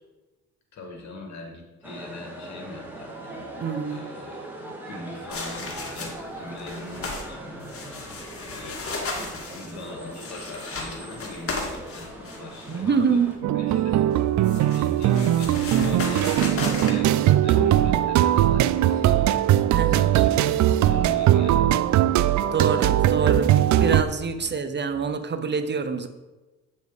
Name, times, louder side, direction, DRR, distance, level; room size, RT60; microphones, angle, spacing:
voice 1, 0.7-7.4 7.7-8.9 9.5-14.0 14.5-19.4 19.8-21.9 24.4-24.5 24.9-25.3, left 3 dB, 65° left, 1 dB, 2.5 m, -42 dB
sound 1, 1.8-13.4, right 1 dB, 5° right, 2.2 m, -40 dB
voice 2, 3.6-4.0 12.7-13.4 19.7-20.1 22.5-26.1, right 5 dB, 35° right, 10 dB, 0.7 m, -26 dB
sound 2, 5.3-6.3 6.6-7.3 7.6-12.8 14.1-16.9, left 3 dB, 50° left, 2.0 m, -34 dB
sound 3, 13.4-24.0, right 12 dB, 70° right, 0.5 m, -20 dB
8.3 x 7.3 x 4.1 m, 1.1 s
cardioid pair, 90°, 30 cm